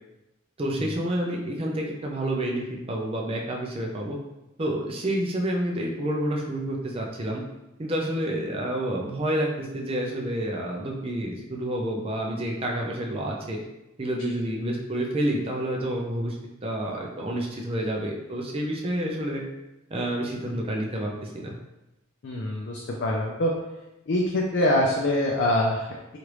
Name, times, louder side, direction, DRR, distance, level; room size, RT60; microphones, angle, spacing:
voice 1, 0.6-4.2 4.6-7.4 7.8-13.6 14.0-16.4 16.6-19.4 19.9-21.6, right 1 dB, 25° right, -1 dB, 0.4 m, -29 dB
voice 2, 22.2-23.5 24.1-26.2, left 1 dB, 55° left, -1 dB, 0.4 m, -24 dB
3.2 x 2.4 x 3.0 m, 0.97 s
head